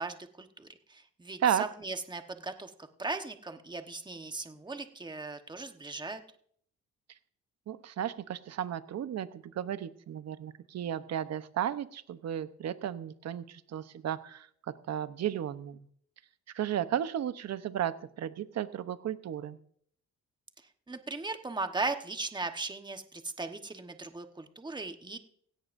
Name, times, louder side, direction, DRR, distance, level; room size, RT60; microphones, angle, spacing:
voice 1, 0.0-2.7 3.0-6.2 20.9-25.2, right 3 dB, 15° right, 7 dB, 1.2 m, -38 dB
voice 2, 7.7-15.9 16.5-19.6, right 10 dB, 60° right, 12 dB, 0.9 m, -34 dB
16.5 x 16.5 x 2.6 m, 0.63 s
cardioid pair, 90°, 30 cm